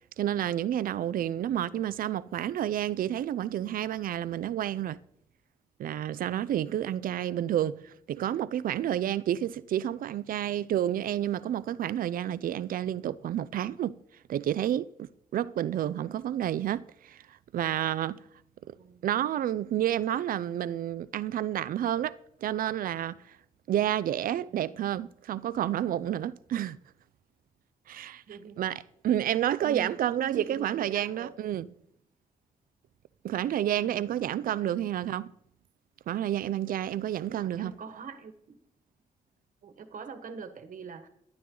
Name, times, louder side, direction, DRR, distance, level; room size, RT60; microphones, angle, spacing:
voice 1, 0.2-5.0 5.8-14.0 14.3-18.2 19.0-23.2 23.7-26.8 27.9-28.2 28.6-31.7 33.2-35.3 36.1-37.7, right 11 dB, 85° right, 0.5 m, -30 dB
voice 2, 18.8-19.1 24.5-24.7 28.3-29.3 29.6-31.7 33.8-34.1 34.4-34.8 37.3-38.6 39.6-41.1, right 5 dB, 70° right, 1.4 m, -44 dB
12.5 x 12.0 x 3.9 m
wide cardioid pair, 115°, 14 cm